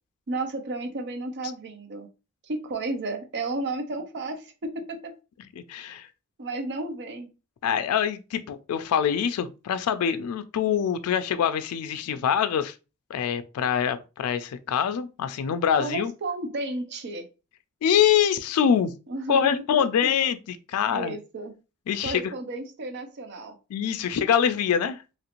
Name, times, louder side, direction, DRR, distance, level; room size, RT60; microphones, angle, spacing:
voice 1, 0.3-2.1 2.5-5.1 6.4-7.3 15.8-17.3 18.6-18.8 19.1-20.1 20.9-21.5 22.0-23.5, right 2 dB, 50° right, 0.5 m, -33 dB
voice 2, 5.6-6.1 7.6-12.7 13.1-16.1 17.8-18.9 19.3-21.2 21.9-22.3 23.7-25.0, left 8 dB, 75° left, 0.3 m, -24 dB
3.0 x 2.4 x 2.9 m
head